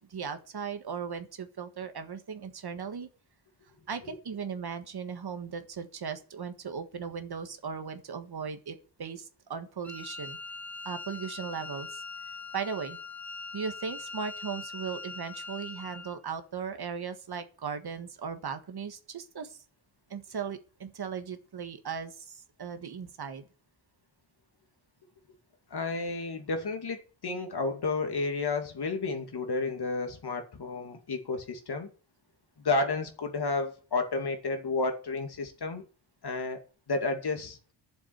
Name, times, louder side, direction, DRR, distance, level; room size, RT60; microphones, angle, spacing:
voice 1, 0.1-3.1 3.9-10.4 10.9-12.0 12.5-13.0 13.5-19.6 20.1-23.4, right 6 dB, 55° right, 1.6 m, -37 dB
Wind instrument woodwind instrument, 9.8-16.2, left 3 dB, 5° left, 0.7 m, -42 dB
voice 2, 25.7-31.9 32.6-35.8 36.2-36.6 36.9-37.6, left 3 dB, 55° left, 2.4 m, -31 dB
11.5 x 7.3 x 8.0 m
wide cardioid pair, 150°, 46 cm